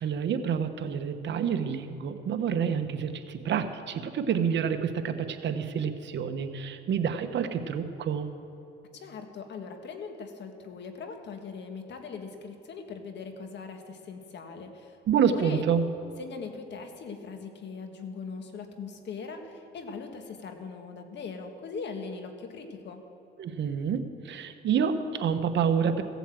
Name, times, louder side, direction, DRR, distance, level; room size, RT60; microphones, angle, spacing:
voice 1, 0.0-8.3 15.1-15.8 23.4-26.0, right 7 dB, 65° right, 8 dB, 1.1 m, -28 dB
voice 2, 8.9-15.0 15.3-15.6 16.2-23.0, left 5 dB, 65° left, 5 dB, 1.6 m, -40 dB
16.0 x 8.3 x 7.6 m, 2.9 s
cardioid pair, 90°, 20 cm